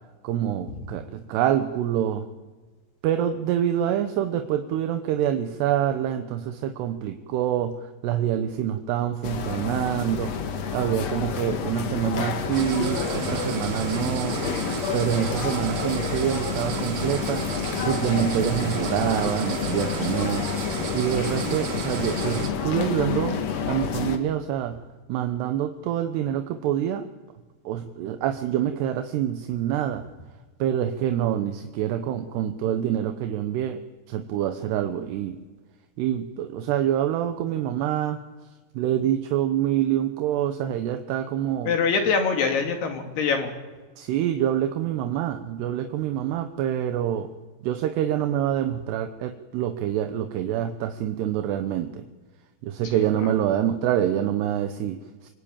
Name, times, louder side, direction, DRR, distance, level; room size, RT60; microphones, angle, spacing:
voice 1, 0.2-2.2 3.0-10.4 10.7-14.4 14.9-17.4 17.8-20.5 20.9-24.8 25.1-27.1 27.6-30.1 30.6-33.8 34.1-35.4 36.0-38.2 38.7-41.7 44.0-47.3 47.6-52.0 52.6-55.3, right 10 dB, 80° right, 7 dB, 3.1 m, -26 dB
sound 1, 9.2-24.2, left 6 dB, 50° left, 2.2 m, -29 dB
sound 2, 12.5-22.5, right 8 dB, 60° right, 2.6 m, -34 dB
voice 2, 41.7-43.5 53.2-53.3, left 5 dB, 70° left, 4 dB, 4.4 m, -24 dB
25.5 x 24.5 x 8.8 m, 1.4 s
omnidirectional pair, 4.9 m